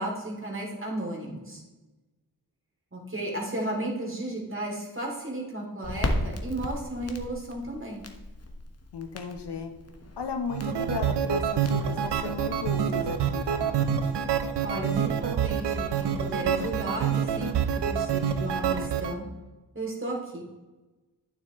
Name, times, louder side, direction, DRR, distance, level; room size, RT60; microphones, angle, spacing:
voice 1, 0.0-1.6 2.9-8.0 14.6-19.2 19.7-20.5, right 1 dB, 30° right, -1 dB, 2.9 m, -34 dB
Crackle, 5.8-13.1, left 1 dB, 40° left, 1.2 m, -36 dB
voice 2, 8.9-9.7 10.2-14.3, left 6 dB, 80° left, 6 dB, 1.0 m, -36 dB
sound 1, 10.5-19.1, right 8 dB, 85° right, 0.7 m, -27 dB
8.9 x 7.2 x 3.1 m, 1.2 s
cardioid pair, 60°, 40 cm